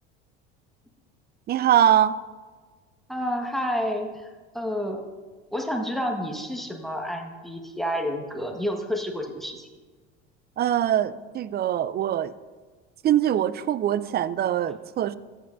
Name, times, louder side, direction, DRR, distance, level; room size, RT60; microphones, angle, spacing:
voice 1, 1.5-2.2 10.6-12.3 13.0-15.2, right 11 dB, 30° right, 17 dB, 0.4 m, -23 dB
voice 2, 3.1-4.1 4.5-5.0 5.5-9.7, equal, ahead, 3 dB, 1.4 m, -29 dB
14.0 x 8.0 x 2.6 m, 1.4 s
hypercardioid pair, 80°, 33 cm